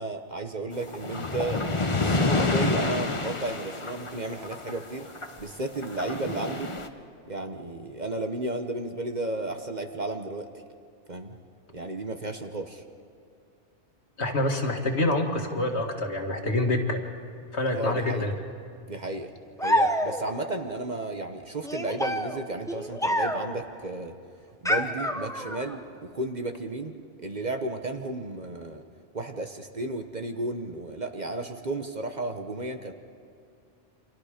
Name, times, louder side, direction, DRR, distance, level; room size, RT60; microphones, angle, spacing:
voice 1, 0.0-1.7 2.0-5.1 5.4-6.7 7.3-10.5 11.1-11.4 11.7-12.8 17.7-18.3 18.9-19.3 19.6-24.1 24.6-28.8 29.1-32.9, right 2 dB, 40° right, 5 dB, 1.2 m, -33 dB
sound 1, 0.7-5.4 5.8-6.9, left 3 dB, 25° left, 1.0 m, -28 dB
voice 2, 14.2-17.0 17.5-18.3, left 2 dB, 65° left, 3 dB, 2.2 m, -26 dB
sound 2, 19.6-20.4 21.6-23.6 24.6-25.7, left 1 dB, 5° left, 1.0 m, -27 dB
29.0 x 26.0 x 5.1 m, 2.3 s
omnidirectional pair, 1.2 m